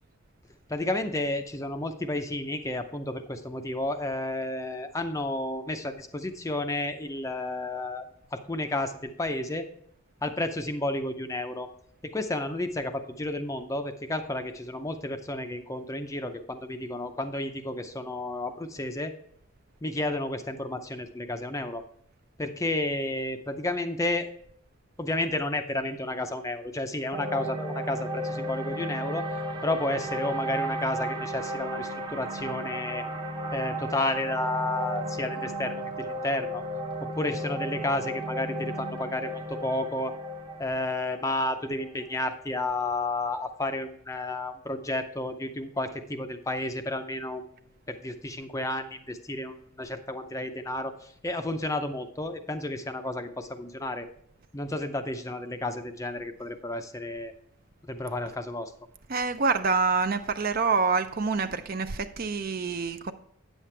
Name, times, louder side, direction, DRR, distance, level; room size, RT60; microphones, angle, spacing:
voice 1, 0.7-8.1 8.3-9.6 10.2-11.7 12.0-19.1 19.8-21.8 22.4-24.3 25.0-29.3 29.6-33.0 33.5-36.6 37.2-40.1 40.6-47.4 47.9-54.1 54.5-57.3 57.9-58.7, left 2 dB, 15° left, 0.5 m, -31 dB
sound 1, 27.1-43.4, right 1 dB, 20° right, 0.8 m, -34 dB
voice 2, 59.1-63.1, right 4 dB, 40° right, 0.5 m, -26 dB
9.2 x 7.4 x 3.3 m
head